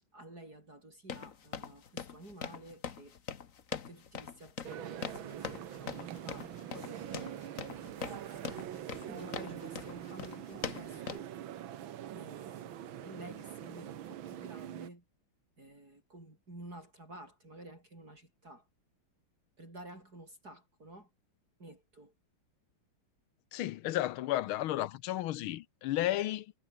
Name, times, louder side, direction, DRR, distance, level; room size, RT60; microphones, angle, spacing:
voice 1, 0.1-3.1 3.7-8.6 9.1-11.3 12.1-15.0 15.6-18.7 19.6-21.1 21.6-22.1, right 1 dB, 45° right, 8.7 m, -51 dB
sound 1, 1.1-11.2, left 7 dB, 45° left, 1.5 m, -43 dB
sound 2, 4.6-14.9, right 11 dB, 75° right, 1.8 m, -44 dB
voice 2, 23.5-26.5, left 14 dB, 80° left, 1.6 m, -33 dB
omnidirectional pair, 2.3 m